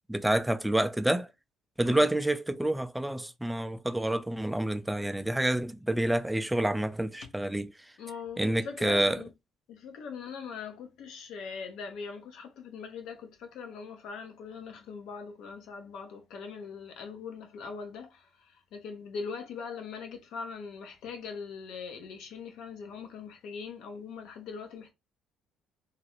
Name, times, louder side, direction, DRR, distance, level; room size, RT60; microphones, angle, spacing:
voice 1, 0.1-1.3 1.8-7.7 8.4-9.2, right 1 dB, 5° right, 0.3 m, -28 dB
voice 2, 8.0-9.3 9.7-24.9, left 5 dB, 75° left, 0.7 m, -41 dB
2.4 x 2.1 x 2.8 m
cardioid pair, 90°, 0 cm